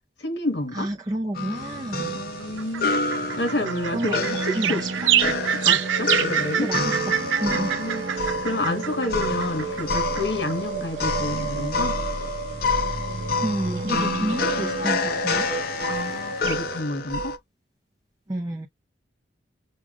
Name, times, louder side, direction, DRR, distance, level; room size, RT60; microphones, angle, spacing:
voice 1, 0.2-0.9 2.1-6.7 7.5-12.0 15.9-17.4, left 2 dB, 65° left, 1.2 m, -30 dB
voice 2, 0.7-2.2 3.9-4.9 6.6-7.7 13.4-15.5 18.3-18.7, right 1 dB, 20° right, 0.5 m, -30 dB
sound 1, 1.3-17.4, left 3 dB, 50° left, 0.6 m, -28 dB
sound 2, 1.6-16.8, right 10 dB, 85° right, 0.4 m, -30 dB
sound 3, 2.2-16.5, right 3 dB, 55° right, 0.8 m, -33 dB
6.1 x 2.2 x 2.4 m
head